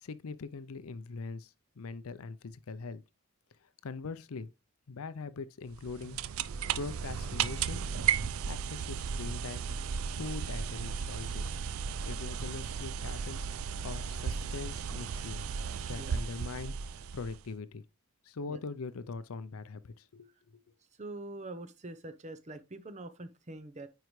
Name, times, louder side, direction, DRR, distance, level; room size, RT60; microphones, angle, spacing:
voice 1, 0.0-3.0 3.8-4.5 4.9-6.2 6.7-7.8 8.5-9.7 10.2-11.5 12.0-13.5 13.8-15.5 15.9-17.8 18.3-20.3, left 4 dB, 75° left, 0.5 m, -42 dB
sound 1, 5.7-17.5, right 7 dB, 70° right, 0.4 m, -35 dB
voice 2, 21.0-23.9, right 2 dB, 30° right, 0.7 m, -44 dB
9.3 x 4.7 x 3.1 m
head